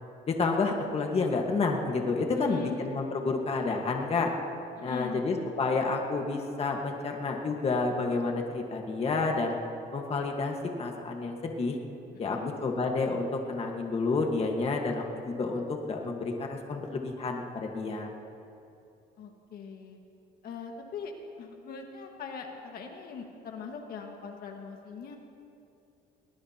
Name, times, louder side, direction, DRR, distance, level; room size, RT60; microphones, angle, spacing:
voice 1, 0.3-4.3 4.8-9.5 9.9-11.8 12.2-18.1, left 3 dB, 35° left, 2 dB, 1.5 m, -30 dB
voice 2, 4.8-5.2 12.1-12.5 19.2-20.0 20.4-21.1 21.4-25.2, left 6 dB, 65° left, 3 dB, 1.7 m, -41 dB
21.5 x 19.5 x 2.9 m, 2.7 s
cardioid pair, 110°, 17 cm